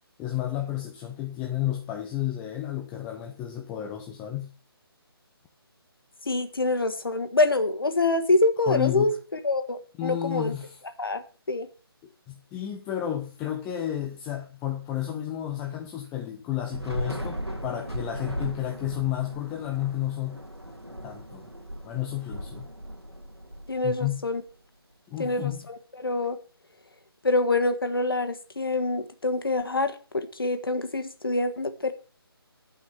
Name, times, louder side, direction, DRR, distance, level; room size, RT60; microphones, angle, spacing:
voice 1, 0.2-4.5 8.6-9.2 10.0-10.8 12.3-20.4 21.0-21.5 21.8-22.7 23.8-24.2 25.1-25.7, left 12 dB, 10° left, 3 dB, 0.5 m, -31 dB
voice 2, 6.3-9.1 9.4-10.5 11.0-11.2 11.5-11.7 23.7-24.4 25.2-26.4 27.2-31.9, left 2 dB, 65° left, 8 dB, 1.6 m, -26 dB
Thunder / Rain, 16.7-24.2, equal, 85° right, 2.4 m, -37 dB
11.5 x 5.6 x 7.2 m, 0.37 s
figure-of-eight pair, 150°, 13 cm